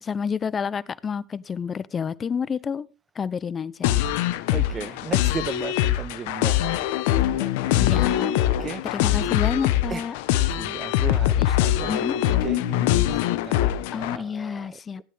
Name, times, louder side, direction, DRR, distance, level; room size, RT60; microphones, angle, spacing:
voice 1, 0.0-2.9 3.2-4.0 7.7-8.3 8.9-10.2 11.4-11.5 11.9-12.2 13.9-15.0, left 6 dB, 35° left, 0.6 m, -29 dB
sound 1, 3.8-14.2, left 12 dB, 75° left, 1.0 m, -23 dB
voice 2, 4.5-7.0 7.3-7.8 8.6-8.8 9.9-10.1 10.6-15.0, right 6 dB, 30° right, 0.8 m, -36 dB
16.5 x 11.0 x 3.6 m
hypercardioid pair, 80°, 0 cm